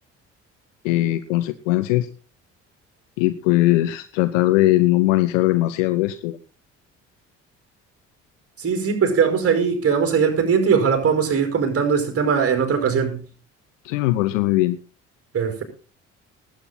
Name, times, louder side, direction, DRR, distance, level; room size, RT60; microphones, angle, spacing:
voice 1, 0.8-2.1 3.2-6.4 13.8-14.8, left 17 dB, 70° left, 0.8 m, -20 dB
voice 2, 8.6-13.2 15.3-15.6, right 6 dB, 35° right, 5.3 m, -20 dB
19.0 x 9.0 x 4.2 m
figure-of-eight pair, 50°, 39 cm